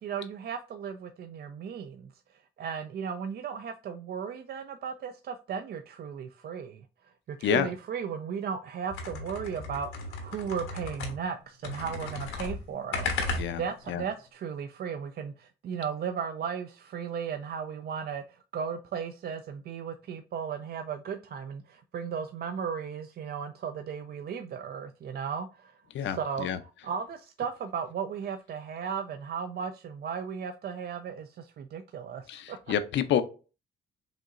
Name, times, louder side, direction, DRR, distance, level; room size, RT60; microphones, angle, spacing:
voice 1, 0.0-2.1 2.6-25.7 26.0-32.6, right 7 dB, 50° right, 0.4 m, -36 dB
sound 1, 8.9-11.4 11.6-13.9, left 3 dB, 90° left, 1.1 m, -35 dB
voice 2, 25.9-26.6 32.3-33.2, left 9 dB, 70° left, 0.6 m, -28 dB
5.1 x 2.9 x 2.5 m
cardioid pair, 90°, 20 cm